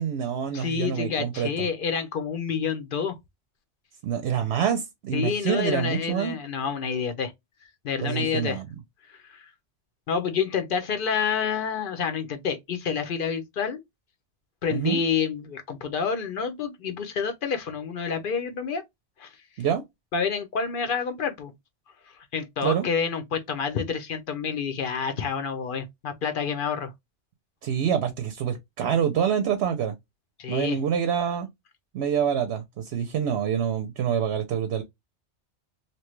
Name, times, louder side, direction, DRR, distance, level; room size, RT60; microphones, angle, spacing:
voice 1, 0.0-1.7 4.0-6.4 8.0-8.7 14.7-15.0 19.6-19.8 22.6-22.9 27.6-29.9 30.5-31.5 31.9-34.8, right 8 dB, 70° right, 0.8 m, -26 dB
voice 2, 0.5-3.2 5.1-7.3 7.8-8.6 9.1-9.4 10.1-13.8 14.6-18.8 19.2-19.3 20.1-21.5 22.3-26.9 30.4-30.8, left 6 dB, 55° left, 0.7 m, -28 dB
2.9 x 2.2 x 3.0 m
omnidirectional pair, 1.2 m